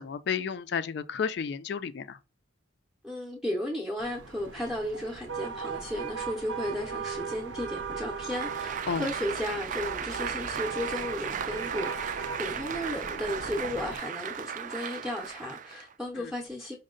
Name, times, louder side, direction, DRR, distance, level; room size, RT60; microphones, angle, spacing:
voice 1, 0.0-2.2 8.9-9.1 16.2-16.3, left 6 dB, 60° left, 0.4 m, -32 dB
voice 2, 3.0-16.8, left 1 dB, 5° right, 0.6 m, -34 dB
sound 1, 4.0-14.0, right 5 dB, 85° right, 0.6 m, -38 dB
Applause, 8.2-15.9, right 8 dB, 45° right, 0.3 m, -36 dB
5.2 x 2.1 x 3.7 m
head